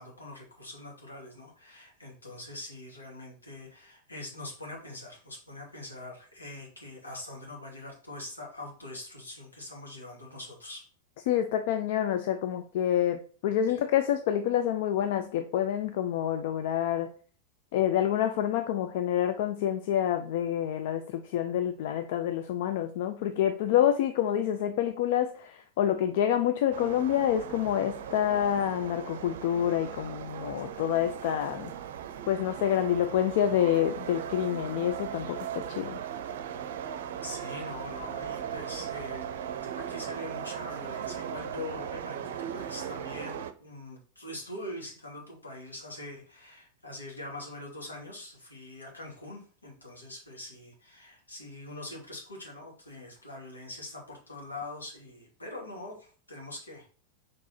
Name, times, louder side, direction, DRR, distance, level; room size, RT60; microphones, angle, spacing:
voice 1, 0.0-10.8 13.7-13.8 37.2-39.3 39.6-56.9, left 2 dB, 80° left, -2 dB, 2.5 m, -43 dB
voice 2, 11.3-17.1 17.7-31.7 32.3-36.0, left 10 dB, 50° left, 8 dB, 0.5 m, -27 dB
sound 1, 26.7-43.5, right 9 dB, 55° right, 0.5 m, -38 dB
4.7 x 4.7 x 4.3 m, 0.41 s
figure-of-eight pair, 90°, 0 cm